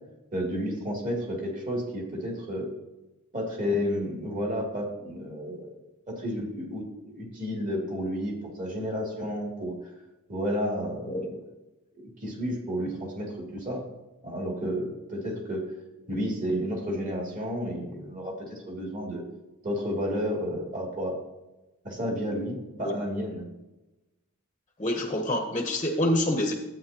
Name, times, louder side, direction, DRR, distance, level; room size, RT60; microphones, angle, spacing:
voice 1, 0.3-2.7 3.3-5.8 6.1-9.7 10.3-11.4 12.0-13.9 14.2-15.7 16.1-19.2 19.6-21.2 21.8-23.4, equal, 35° right, -2 dB, 2.6 m, -31 dB
voice 2, 24.8-26.5, left 1 dB, 25° left, 3 dB, 0.8 m, -27 dB
12.5 x 8.7 x 2.9 m, 1.0 s
head